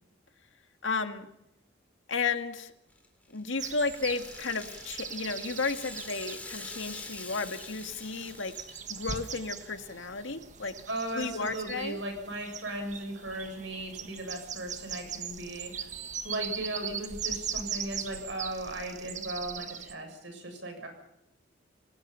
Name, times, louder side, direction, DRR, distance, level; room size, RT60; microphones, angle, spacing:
voice 1, 0.8-1.3 2.1-2.7 3.3-8.5 8.9-10.7 11.1-12.0, left 4 dB, 75° left, 7 dB, 2.0 m, -33 dB
Rattle (instrument), 2.9-9.1, left 2 dB, 10° left, 4.0 m, -45 dB
sound 1, 3.6-19.9, right 7 dB, 40° right, 1.4 m, -40 dB
voice 2, 10.9-15.9 16.2-20.9, right 1 dB, 65° right, 4 dB, 7.5 m, -37 dB
28.0 x 19.0 x 5.7 m, 0.83 s
head